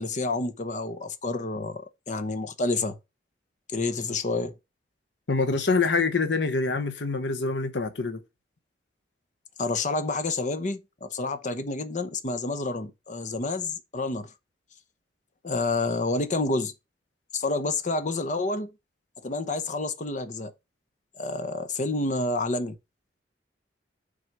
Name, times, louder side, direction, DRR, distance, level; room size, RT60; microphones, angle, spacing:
voice 1, 0.0-3.0 3.7-4.5 9.6-14.3 15.4-16.7 17.3-18.7 19.2-20.5 21.2-22.8, left 3 dB, 45° left, 0.9 m, -29 dB
voice 2, 5.3-8.2, left 4 dB, 80° left, 0.9 m, -25 dB
6.2 x 4.0 x 5.9 m
head